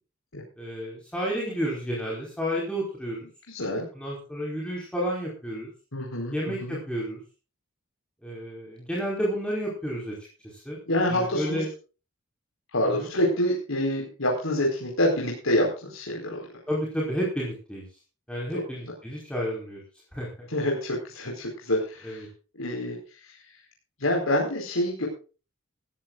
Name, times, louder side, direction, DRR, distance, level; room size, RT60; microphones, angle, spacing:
voice 1, 0.6-3.3 3.9-5.7 6.3-7.2 8.2-10.1 10.6-10.8 11.1-11.7 12.8-13.1 16.7-17.8 18.3-19.8 20.1-20.5 22.0-22.3, equal, 5° left, -4 dB, 4.8 m, -31 dB
voice 2, 3.5-3.9 5.9-6.8 10.9-11.6 12.7-16.4 18.5-18.6 20.5-22.3 22.5-23.4 24.0-25.1, left 1 dB, 80° left, -2 dB, 4.7 m, -27 dB
19.5 x 14.5 x 2.5 m, 0.35 s
head